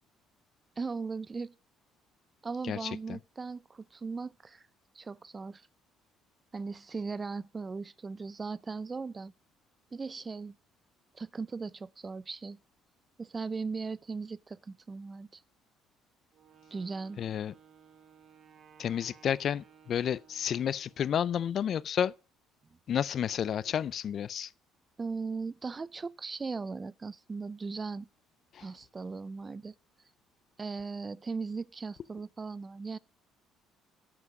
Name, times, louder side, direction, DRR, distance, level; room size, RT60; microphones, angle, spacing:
voice 1, 0.8-1.5 2.4-4.6 4.9-5.7 6.5-9.3 9.9-10.6 11.1-12.6 13.2-15.4 16.7-17.2 25.0-28.1 28.6-29.7 30.6-33.0, right 4 dB, 25° right, 0.4 m, -38 dB
voice 2, 2.6-3.2 17.2-17.5 18.8-22.1 22.9-24.5 28.5-28.7, left 9 dB, 50° left, 0.4 m, -31 dB
Wind instrument woodwind instrument, 16.3-21.2, right 7 dB, 50° right, 1.8 m, -59 dB
11.0 x 6.0 x 5.2 m
cardioid pair, 115°, 0 cm